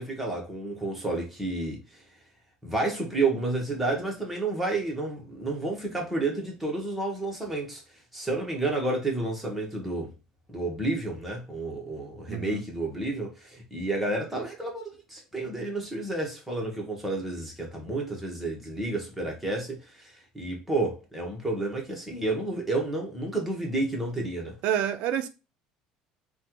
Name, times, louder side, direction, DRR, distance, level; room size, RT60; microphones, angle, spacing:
voice 1, 0.0-2.0 2.6-7.8 8.1-10.1 10.5-24.6, right 2 dB, 5° right, 1.1 m, -30 dB
voice 2, 12.3-12.6 24.6-25.3, right 9 dB, 65° right, 0.4 m, -28 dB
3.3 x 2.2 x 2.9 m
cardioid pair, 130°, 2 cm